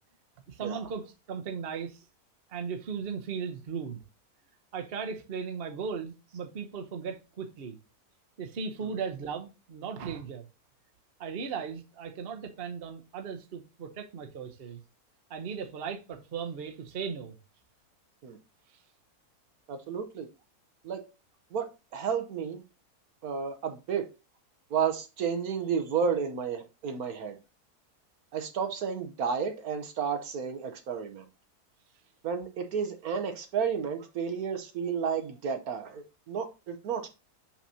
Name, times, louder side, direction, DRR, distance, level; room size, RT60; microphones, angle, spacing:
voice 1, 0.5-2.0 2.5-4.0 4.7-7.8 8.4-10.4 11.2-14.8 15.3-17.3, right 6 dB, 45° right, 1.0 m, -37 dB
voice 2, 19.7-20.3 20.8-21.0 21.5-22.6 23.2-24.1 24.7-27.4 28.3-31.2 32.2-37.1, right 6 dB, 70° right, 1.3 m, -32 dB
5.8 x 5.8 x 2.8 m
omnidirectional pair, 1.6 m